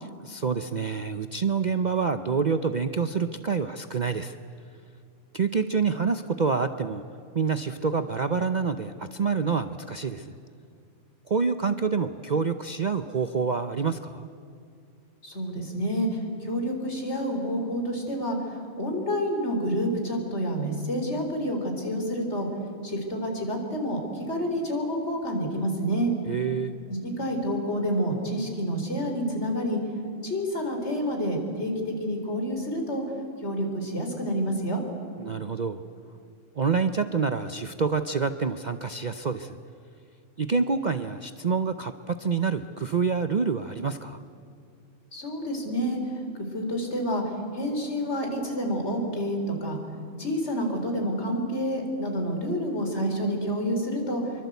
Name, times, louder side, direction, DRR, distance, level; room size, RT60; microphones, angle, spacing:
voice 1, 0.2-4.4 5.3-7.0 7.3-10.3 11.3-14.3 26.3-26.7 35.2-35.8 36.6-39.6 40.4-44.2, right 5 dB, 40° right, 9 dB, 0.7 m, -27 dB
voice 2, 15.2-16.1 16.4-18.4 18.8-22.5 22.8-26.1 27.2-29.8 30.2-31.7 32.0-33.0 33.4-34.8 45.1-46.0 46.5-47.2 47.5-49.8 50.2-54.2, equal, 55° left, 3 dB, 4.5 m, -28 dB
26.0 x 24.0 x 8.2 m, 2.5 s
omnidirectional pair, 1.4 m